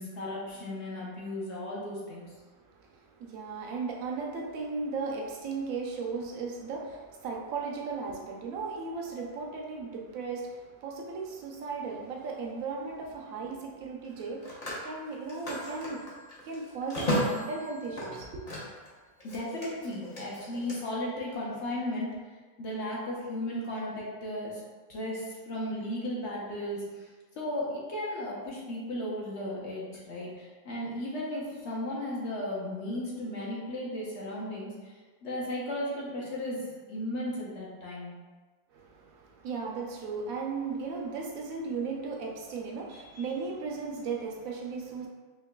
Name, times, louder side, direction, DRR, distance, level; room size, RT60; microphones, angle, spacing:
voice 1, 0.0-2.3 19.2-22.2 22.6-24.6 24.9-27.1 27.4-38.2, left 1 dB, 55° left, -5 dB, 1.0 m, -35 dB
voice 2, 2.7-16.0 16.4-18.4 38.7-45.1, right 4 dB, 70° right, -1 dB, 1.0 m, -36 dB
Telephone, 11.9-12.1 14.0-18.9 19.2-20.8, equal, 35° left, 0.6 m, -35 dB
4.7 x 2.9 x 2.2 m, 1.4 s
omnidirectional pair, 1.6 m